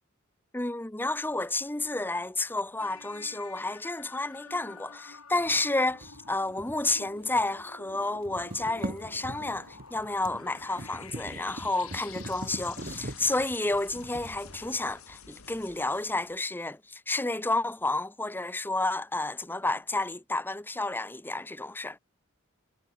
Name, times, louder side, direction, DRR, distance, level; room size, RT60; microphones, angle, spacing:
voice 1, 0.5-22.0, left 2 dB, 10° left, 0.8 m, -31 dB
sound 1, 2.8-16.5, left 5 dB, 75° left, 4.1 m, -49 dB
sound 2, 5.4-7.6 7.9-15.2, right 1 dB, 40° right, 1.8 m, -43 dB
head